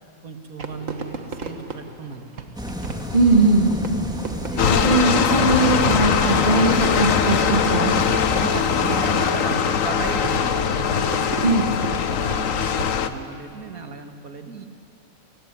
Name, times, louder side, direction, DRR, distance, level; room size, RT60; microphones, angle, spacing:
voice 1, 0.2-2.5 4.2-4.9 8.4-11.7 12.1-14.7, right 4 dB, 80° right, 6 dB, 2.4 m, -35 dB
Fireworks, 0.6-13.3, right 4 dB, 65° right, 1.9 m, -36 dB
sound 1, 2.6-9.3, equal, 5° right, 2.0 m, -30 dB
voice 2, 3.1-3.7 4.7-7.9 11.4-11.7, right 3 dB, 35° right, -2 dB, 2.4 m, -19 dB
sound 2, 4.6-13.1, left 7 dB, 65° left, 1.3 m, -21 dB
29.5 x 17.0 x 9.9 m, 2.4 s
omnidirectional pair, 1.5 m